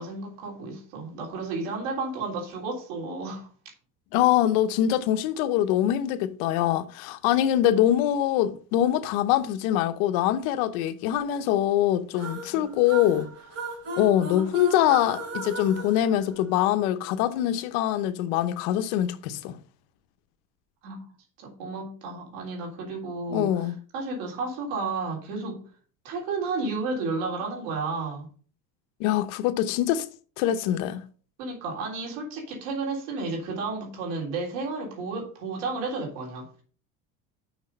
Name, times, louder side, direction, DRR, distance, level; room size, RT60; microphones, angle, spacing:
voice 1, 0.0-3.5 12.5-12.6 20.8-21.0 21.4-25.6 26.0-28.3 31.4-36.6, right 3 dB, 75° right, 3.5 m, -32 dB
voice 2, 4.1-13.3 14.0-19.6 23.3-23.8 29.0-30.1 30.4-31.0, left 12 dB, 85° left, 0.9 m, -24 dB
sound 1, 12.1-16.9, right 2 dB, 40° right, 4.0 m, -36 dB
6.2 x 5.9 x 5.4 m
cardioid pair, 140°, 41 cm